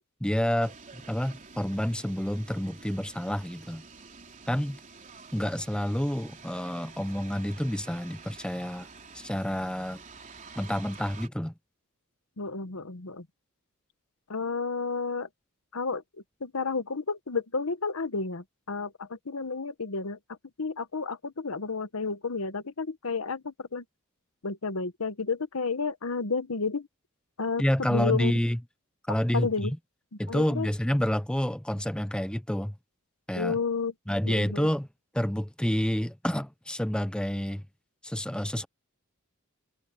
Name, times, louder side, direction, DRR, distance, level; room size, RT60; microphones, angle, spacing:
voice 1, 0.2-3.8 4.5-4.8 5.3-8.9 9.1-10.0 10.5-11.5 27.6-28.6 29.1-29.8 30.2-32.8 33.3-33.6 34.1-34.9 35.1-37.6 38.0-38.7, equal, 5° left, 0.7 m, -29 dB
sound 1, 0.6-11.3, right 4 dB, 40° right, 3.7 m, -49 dB
voice 2, 12.4-13.3 14.3-15.3 15.7-16.0 16.4-23.8 24.4-26.9 27.4-27.6 27.9-28.3 29.3-29.7 30.3-30.7 33.3-33.9 34.2-34.7, left 4 dB, 90° left, 1.2 m, -31 dB
head